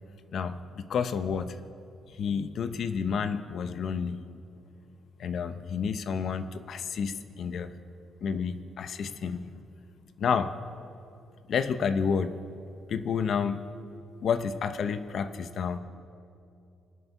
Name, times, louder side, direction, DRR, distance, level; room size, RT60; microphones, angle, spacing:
voice 1, 0.3-1.6 2.1-4.2 5.2-7.7 8.2-9.5 10.2-10.5 11.5-12.4 12.9-13.6 14.2-15.8, left 6 dB, 60° left, 11 dB, 0.7 m, -30 dB
23.5 x 8.1 x 5.6 m, 2.6 s
cardioid pair, 90°, 0 cm